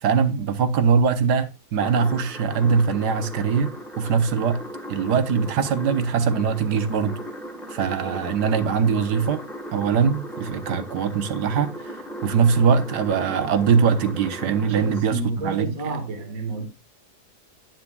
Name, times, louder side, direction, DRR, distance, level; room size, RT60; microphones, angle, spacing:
voice 1, 0.0-4.6 4.9-7.2 7.7-9.4 9.7-11.9 12.2-16.0, right 6 dB, 90° right, 1.6 m, -22 dB
sound 1, 1.8-15.0, equal, ahead, 1.4 m, -37 dB
voice 2, 14.5-16.7, right 2 dB, 60° right, 2.1 m, -31 dB
10.5 x 8.9 x 2.3 m
omnidirectional pair, 1.7 m